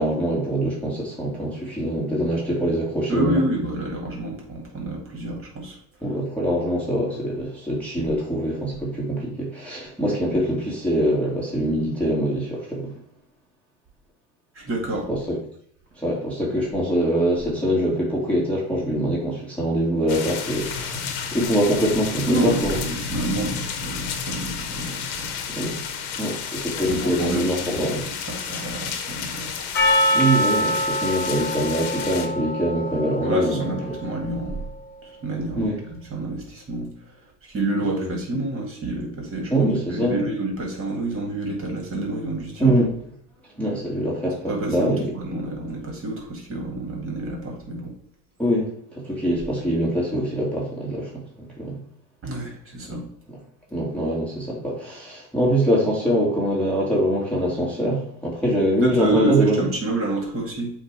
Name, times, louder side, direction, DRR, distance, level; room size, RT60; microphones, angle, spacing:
voice 1, 0.0-3.4 6.0-12.9 15.1-15.4 16.0-22.8 25.5-25.8 26.2-28.0 30.1-33.6 35.5-35.8 37.9-38.1 39.5-40.2 42.6-42.9 43.6-45.1 48.4-51.1 51.4-51.8 52.9-53.0 53.7-59.6, equal, 5° left, -5 dB, 1.8 m, -24 dB
voice 2, 3.1-5.8 14.5-15.1 22.3-25.7 26.8-29.6 33.2-34.7 35.0-35.7 36.1-42.8 44.5-47.9 52.2-53.1 58.8-60.7, right 2 dB, 25° right, 0 dB, 2.2 m, -29 dB
sound 1, 20.1-32.3, left 6 dB, 65° left, 1.2 m, -31 dB
Percussion, 29.7-34.3, equal, 20° left, 1.8 m, -24 dB
7.7 x 2.6 x 4.6 m, 0.65 s
hypercardioid pair, 90°, 48 cm